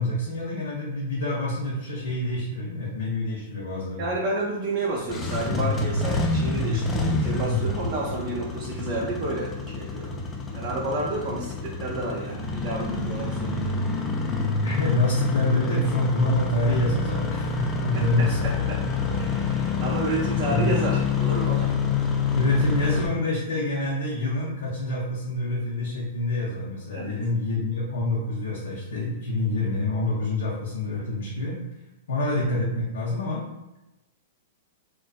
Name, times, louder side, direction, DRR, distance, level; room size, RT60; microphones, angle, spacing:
voice 1, 0.0-4.1 14.6-18.4 20.3-20.7 22.4-31.6 32.1-33.4, left 2 dB, 75° left, -4 dB, 0.5 m, -27 dB
voice 2, 4.0-10.1 10.5-13.9 17.9-18.8 19.1-21.7 26.9-27.2, right 2 dB, 50° right, -3 dB, 0.5 m, -31 dB
Engine starting, 4.9-23.1, left 4 dB, 20° left, 0.4 m, -27 dB
2.5 x 2.2 x 2.3 m, 0.97 s
hypercardioid pair, 115°, 0 cm